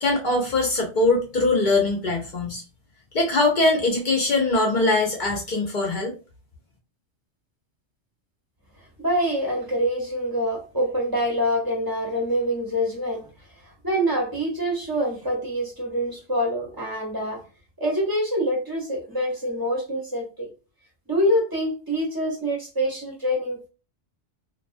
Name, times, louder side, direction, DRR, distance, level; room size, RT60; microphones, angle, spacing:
voice 1, 0.0-2.6 3.1-6.1, left 2 dB, 55° left, 0 dB, 0.6 m, -22 dB
voice 2, 9.0-13.3 13.6-17.4 17.8-20.5 21.1-23.7, equal, 25° right, -2 dB, 0.7 m, -25 dB
2.3 x 2.2 x 2.5 m, 0.33 s
omnidirectional pair, 1.2 m